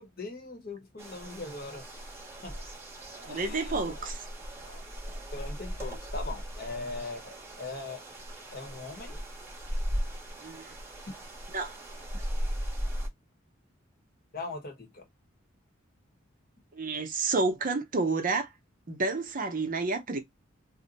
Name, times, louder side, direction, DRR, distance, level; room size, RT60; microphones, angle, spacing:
voice 1, 0.0-2.1 2.4-2.6 3.3-3.9 5.3-8.0 8.5-9.2 11.1-11.3 14.3-15.1, left 3 dB, 50° left, 1.0 m, -40 dB
sound 1, 1.0-13.1, equal, 10° right, 0.9 m, -37 dB
voice 2, 3.2-4.2 10.4-10.7 11.5-11.8 16.7-18.5 18.9-20.2, right 3 dB, 45° right, 0.7 m, -30 dB
2.6 x 2.1 x 3.9 m
head